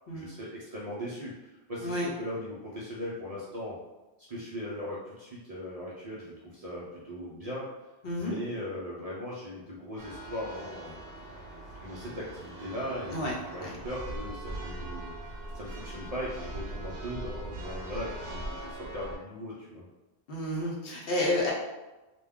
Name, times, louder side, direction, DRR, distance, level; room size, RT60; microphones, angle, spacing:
voice 1, 0.1-3.8 4.3-7.7 8.1-11.0 11.8-19.9, equal, 50° right, -7 dB, 0.5 m, -39 dB
voice 2, 8.0-8.4 13.1-13.3 13.6-13.7 20.3-21.5, left 1 dB, 65° left, -3 dB, 0.8 m, -30 dB
Church bell, 10.0-19.2, right 1 dB, 75° right, 0.9 m, -41 dB
2.3 x 2.2 x 3.4 m, 1.1 s
omnidirectional pair, 1.1 m